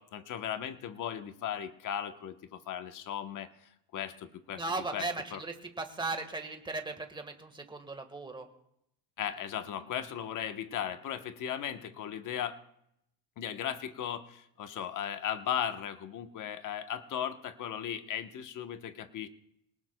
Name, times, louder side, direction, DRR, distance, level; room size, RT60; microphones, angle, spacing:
voice 1, 0.0-3.5 3.9-4.6 4.9-5.4 9.2-12.6 13.4-19.3, left 9 dB, 40° left, 8 dB, 1.1 m, -37 dB
voice 2, 4.5-8.5, right 3 dB, 10° right, 5 dB, 1.5 m, -37 dB
25.0 x 19.0 x 2.3 m, 0.77 s
cardioid pair, 145°, 48 cm